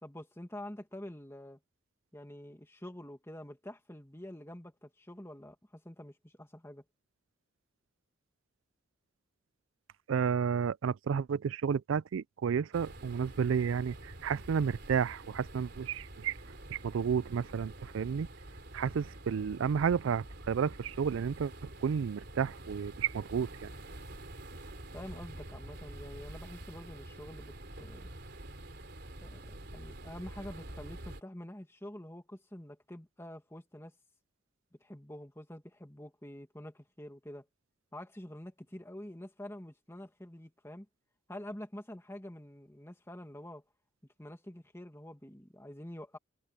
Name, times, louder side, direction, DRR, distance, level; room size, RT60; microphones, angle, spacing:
voice 1, 0.0-1.6 2.1-6.8 24.9-28.1 29.2-34.0 34.8-37.5 37.9-40.9 41.3-43.6 44.2-46.2, left 1 dB, 10° left, 1.9 m, -47 dB
voice 2, 10.1-16.4 16.7-18.3 18.7-21.5 21.8-23.7, right 7 dB, 70° right, 0.4 m, -31 dB
sound 1, 12.7-31.2, right 1 dB, 55° right, 3.8 m, -47 dB
head